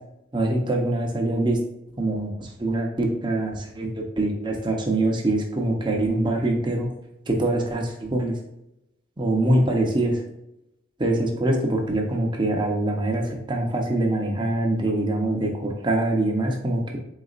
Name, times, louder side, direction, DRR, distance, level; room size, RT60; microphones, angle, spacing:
voice 1, 0.3-1.6 2.0-6.9 7.3-8.4 9.2-10.2 11.0-17.0, right 1 dB, 25° right, 1 dB, 0.7 m, -24 dB
4.0 x 4.0 x 2.4 m, 0.86 s
head